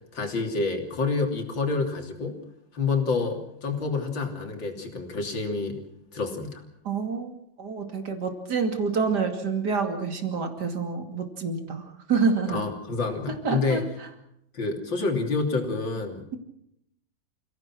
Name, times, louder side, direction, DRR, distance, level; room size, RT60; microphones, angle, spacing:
voice 1, 0.1-2.4 2.7-5.8 6.1-6.6 12.5-13.8 14.5-16.4, left 4 dB, 80° left, 3 dB, 3.9 m, -28 dB
voice 2, 6.8-7.3 7.6-12.6 13.4-13.8, right 5 dB, 60° right, 5 dB, 3.1 m, -27 dB
28.5 x 17.0 x 6.2 m, 0.76 s
omnidirectional pair, 2.0 m